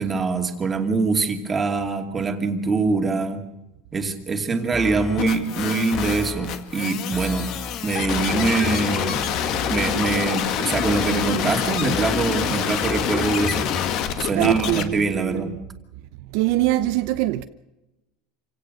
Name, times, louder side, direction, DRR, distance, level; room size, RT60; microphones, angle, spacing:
voice 1, 0.0-3.4 3.9-7.5 7.8-9.2 9.7-13.7 14.2-15.5, right 4 dB, 15° right, 2.6 m, -24 dB
sound 1, 4.7-5.5 5.9-6.7 7.1-10.3 10.7-11.5 11.9-14.1, left 3 dB, 15° left, 1.0 m, -34 dB
sound 2, 5.2-14.8, left 9 dB, 50° left, 2.1 m, -26 dB
voice 2, 14.3-15.6 16.3-17.4, right 16 dB, 60° right, 0.8 m, -23 dB
27.0 x 17.0 x 6.5 m
supercardioid pair, 150°, 0 cm